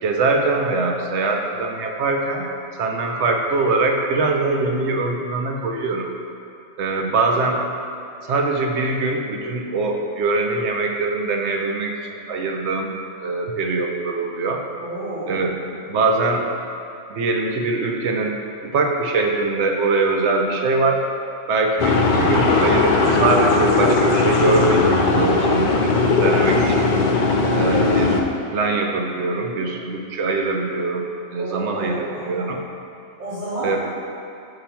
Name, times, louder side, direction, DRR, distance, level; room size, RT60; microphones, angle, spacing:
voice 1, 0.0-2.5 2.8-6.1 6.8-7.6 8.3-12.9 13.2-14.6 15.3-15.5 15.9-16.5 17.1-18.4 18.6-21.0 21.5-26.9 27.5-28.2 28.5-31.1 31.3-32.6 33.6-33.8, right 3 dB, 70° right, 2 dB, 0.9 m, -22 dB
voice 2, 14.8-15.7 31.3-32.5 33.2-33.8, right 1 dB, 40° right, -15 dB, 1.7 m, -31 dB
sound 1, 21.8-28.2, left 3 dB, 60° left, 0.5 m, -18 dB
6.3 x 2.9 x 5.7 m, 2.7 s
omnidirectional pair, 1.3 m